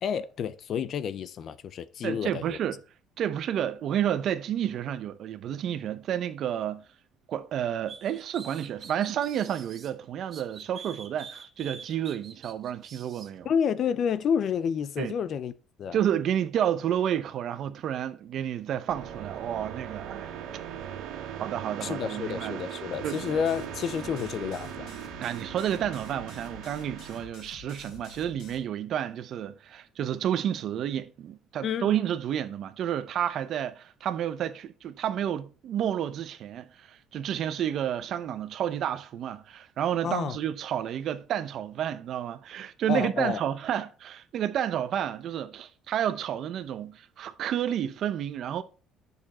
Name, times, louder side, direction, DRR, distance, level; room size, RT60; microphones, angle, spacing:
voice 1, 0.0-2.6 13.4-15.5 15.8-16.0 21.8-24.9 31.6-31.9 40.0-40.4 42.9-43.4, left 7 dB, 40° left, 0.6 m, -29 dB
voice 2, 2.0-2.8 3.2-6.8 7.3-13.5 15.0-15.1 15.9-20.3 21.4-22.6 23.0-23.2 25.2-48.6, right 10 dB, 45° right, 0.8 m, -30 dB
sound 1, 7.9-9.9 10.3-13.3, right 6 dB, 30° right, 1.2 m, -45 dB
sound 2, 18.9-27.3, right 9 dB, 70° right, 1.9 m, -39 dB
sound 3, 22.9-28.6, left 4 dB, 70° left, 3.9 m, -49 dB
10.5 x 6.8 x 4.2 m
cardioid pair, 160°, 0 cm